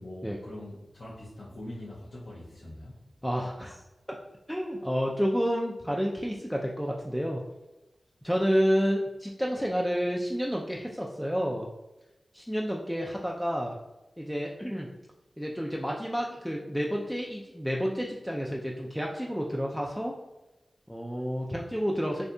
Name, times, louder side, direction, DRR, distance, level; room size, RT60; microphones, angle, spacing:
voice 1, 0.0-3.0, left 1 dB, 75° left, -8 dB, 0.6 m, -43 dB
voice 2, 3.2-3.8 4.5-7.4 8.2-11.7 12.3-13.8 14.2-14.9 15.4-20.1 20.9-22.3, equal, ahead, -2 dB, 0.3 m, -30 dB
2.6 x 2.5 x 2.2 m, 1.0 s
cardioid pair, 45°, 0 cm